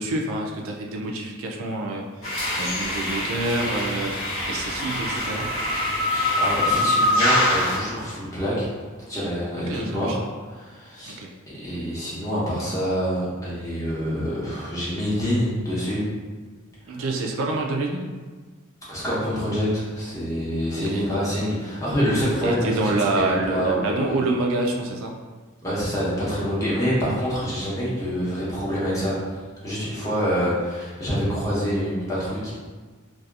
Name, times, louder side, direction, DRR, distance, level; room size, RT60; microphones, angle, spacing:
voice 1, 0.0-4.2 4.5-5.5 9.7-10.3 11.1-11.3 16.9-18.2 20.7-21.0 22.4-25.2 27.0-27.1, right 2 dB, 65° right, 1 dB, 0.3 m, -27 dB
sound 1, 2.2-7.8, left 1 dB, 75° left, 0.8 m, -24 dB
voice 2, 6.1-8.7 9.1-10.2 10.5-11.2 11.6-16.0 16.9-17.0 18.9-24.2 25.6-29.2 29.6-32.5, equal, 15° left, -9 dB, 0.7 m, -26 dB
2.7 x 2.3 x 2.3 m, 1.4 s
head